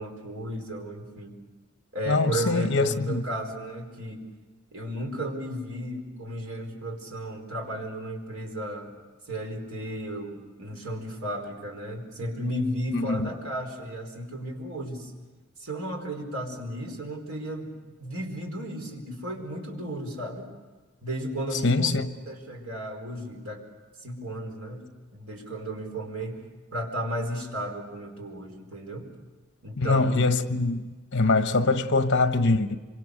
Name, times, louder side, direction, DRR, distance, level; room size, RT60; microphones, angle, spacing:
voice 1, 0.0-1.4 1.9-4.2 4.7-8.9 9.3-15.1 15.6-17.7 18.0-20.5 21.0-22.0 22.3-23.6 24.0-24.9 25.1-26.4 26.7-29.1 29.6-30.2, right 1 dB, 85° right, 4.8 m, -34 dB
voice 2, 2.1-3.2 12.9-13.3 21.6-22.1 29.8-30.8 31.1-32.7, left 3 dB, 55° left, 1.3 m, -23 dB
26.5 x 25.0 x 6.7 m
head